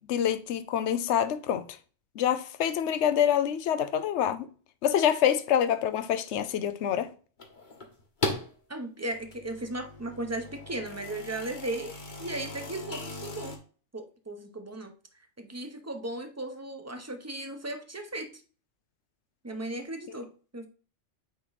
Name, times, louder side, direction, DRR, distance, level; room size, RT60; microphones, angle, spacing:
voice 1, 0.1-1.6 2.2-4.5 4.8-7.1, left 9 dB, 70° left, 0.9 m, -26 dB
sound 1, 7.4-8.5 9.1-13.6, left 2 dB, 40° left, 1.3 m, -38 dB
voice 2, 8.7-11.9 12.2-13.6 13.9-14.9 15.4-18.4 19.4-20.7, right 2 dB, 15° right, 0.8 m, -36 dB
9.1 x 3.1 x 4.0 m
omnidirectional pair, 1.3 m